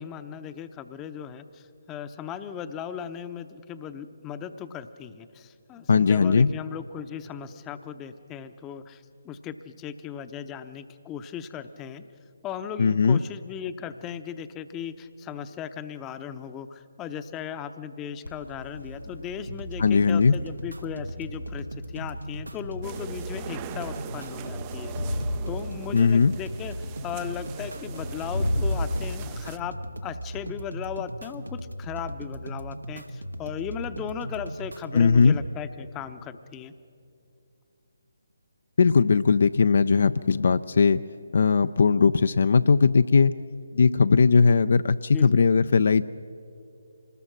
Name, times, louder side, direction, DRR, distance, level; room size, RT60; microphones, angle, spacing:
voice 1, 0.0-12.0 12.4-21.7 21.9-36.7 45.1-45.4, left 8 dB, 15° left, 11 dB, 0.7 m, -37 dB
voice 2, 5.9-6.5 12.8-13.2 19.8-20.4 25.9-26.3 34.9-35.4 38.8-41.0 41.3-43.3 43.7-46.0, left 5 dB, 55° left, 13 dB, 0.4 m, -19 dB
Crowd, 18.2-29.0, left 1 dB, 85° left, 3.7 m, -35 dB
sound 1, 19.5-35.5, equal, 85° right, 1.1 m, -38 dB
sound 2, 22.8-29.6, right 12 dB, 20° right, 0.4 m, -42 dB
25.5 x 20.0 x 6.1 m, 2.6 s
figure-of-eight pair, 145°, 0 cm